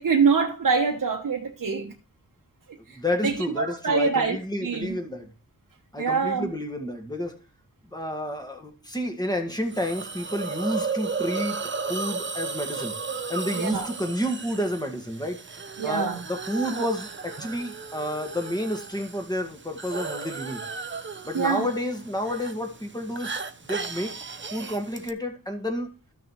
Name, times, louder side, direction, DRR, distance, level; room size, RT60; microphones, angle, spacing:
voice 1, 0.0-1.9 2.9-5.0 6.0-6.5 13.5-13.9 15.8-16.2 21.3-21.7, right 5 dB, 60° right, 1.1 m, -25 dB
voice 2, 2.9-5.3 5.9-7.4 7.9-11.6 11.9-13.0 13.3-15.4 15.8-20.7 21.2-23.3 23.6-24.1 24.5-25.9, equal, 10° left, 1.8 m, -30 dB
Hiss, 9.7-25.1, right 4 dB, 35° right, 0.7 m, -35 dB
13.5 x 6.4 x 3.1 m
wide cardioid pair, 110°, 35 cm